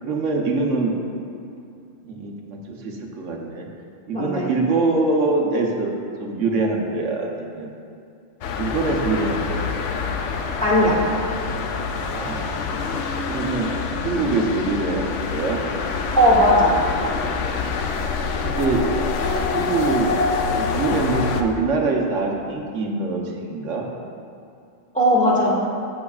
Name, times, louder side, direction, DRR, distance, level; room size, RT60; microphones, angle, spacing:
voice 1, 0.0-1.0 2.0-3.7 4.1-7.7 8.6-9.6 12.1-12.6 13.3-13.7 14.0-15.6 18.4-18.8 19.5-20.1 20.5-23.8, right 3 dB, 80° right, 0 dB, 1.2 m, -24 dB
voice 2, 4.1-4.5 10.6-11.0 16.2-16.8 24.9-25.5, equal, 5° left, -6 dB, 1.7 m, -17 dB
sound 1, 8.4-21.4, left 4 dB, 80° left, 1.0 m, -26 dB
15.5 x 6.3 x 2.4 m, 2.4 s
omnidirectional pair, 1.2 m